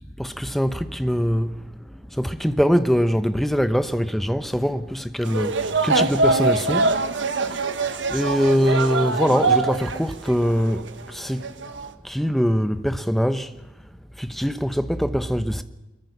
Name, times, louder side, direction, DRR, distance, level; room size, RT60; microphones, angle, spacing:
voice 1, 0.2-7.1 7.4-7.8 8.1-11.5 12.0-13.7 14.2-15.6, equal, ahead, 0.9 m, -23 dB
sound 1, 5.2-10.0 10.3-11.0 11.4-11.9, right 3 dB, 90° right, 1.5 m, -23 dB
24.0 x 22.5 x 6.1 m
head